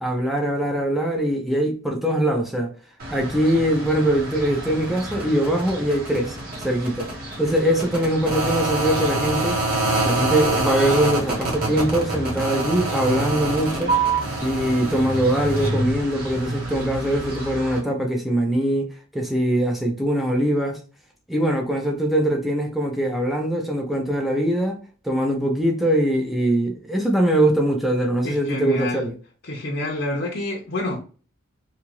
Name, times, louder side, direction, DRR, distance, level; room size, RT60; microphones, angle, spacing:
voice 1, 0.0-2.7 3.1-7.1 7.4-9.6 10.0-13.9 14.4-18.9 19.1-20.8 21.3-24.8 25.0-29.1, right 1 dB, ahead, 0.6 m, -22 dB
sound 1, 3.0-17.8, right 2 dB, 45° right, 1.1 m, -26 dB
voice 2, 28.2-29.1 29.4-31.0, left 1 dB, 50° left, 0.6 m, -27 dB
2.8 x 2.4 x 3.0 m
head